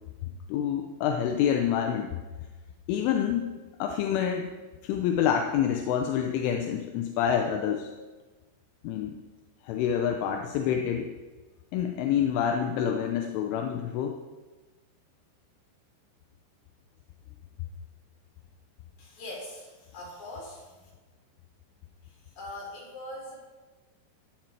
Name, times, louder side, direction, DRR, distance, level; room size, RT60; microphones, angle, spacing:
voice 1, 0.5-2.2 2.9-3.5 3.8-4.5 4.8-7.9 8.8-9.1 9.7-11.1 11.7-14.2, left 8 dB, 80° left, 4 dB, 3.2 m, -27 dB
voice 2, 19.0-20.9 22.0-23.4, left 1 dB, 40° left, -4 dB, 5.2 m, -42 dB
15.5 x 10.5 x 4.5 m, 1.3 s
omnidirectional pair, 5.6 m